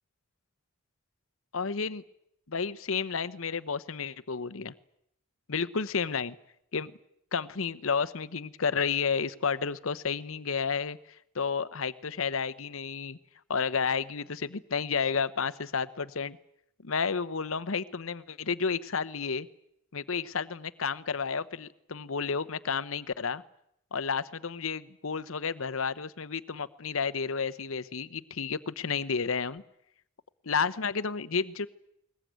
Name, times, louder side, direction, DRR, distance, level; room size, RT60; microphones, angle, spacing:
voice 1, 1.5-2.0 2.5-4.7 5.5-6.3 6.7-6.9 7.3-13.2 13.5-16.4 16.8-19.5 19.9-23.4 23.9-29.6 30.5-31.7, left 5 dB, 70° left, 14 dB, 0.9 m, -31 dB
21.5 x 20.0 x 9.3 m, 0.77 s
head